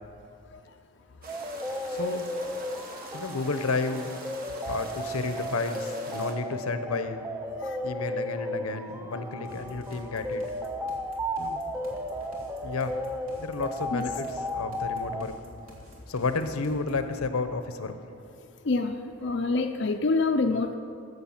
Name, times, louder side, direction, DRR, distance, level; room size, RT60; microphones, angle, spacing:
sound 1, 1.2-6.3, right 2 dB, 40° right, 1.4 m, -44 dB
sound 2, 1.3-15.2, left 1 dB, 10° right, 0.5 m, -34 dB
voice 1, 1.9-2.3 3.1-4.1 4.6-7.3 7.8-10.4 11.4-11.6 12.6-13.0 13.4-15.3 16.1-17.9, left 3 dB, 85° left, 9 dB, 0.8 m, -31 dB
sound 3, 9.4-17.1, equal, 70° right, 2.3 m, -50 dB
voice 2, 18.6-20.7, left 3 dB, 55° left, 4 dB, 0.5 m, -26 dB
14.5 x 6.9 x 7.2 m, 2.5 s
head